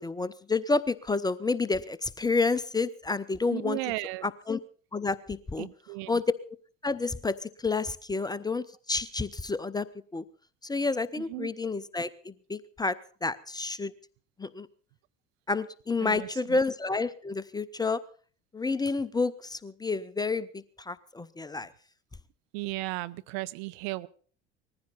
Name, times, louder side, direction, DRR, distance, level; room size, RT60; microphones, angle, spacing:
voice 1, 0.0-3.9 4.2-4.6 4.9-5.7 6.1-6.3 6.8-9.9 10.1-10.2 10.6-13.9 14.4-14.7 15.5-18.0 18.5-21.7, left 3 dB, 10° left, 18 dB, 0.6 m, -30 dB
voice 2, 3.5-4.3 5.6-6.2 11.2-11.5 16.0-16.6 22.5-24.1, right 21 dB, 50° right, 14 dB, 0.7 m, -35 dB
20.0 x 15.0 x 4.1 m, 0.42 s
figure-of-eight pair, 60°, 37 cm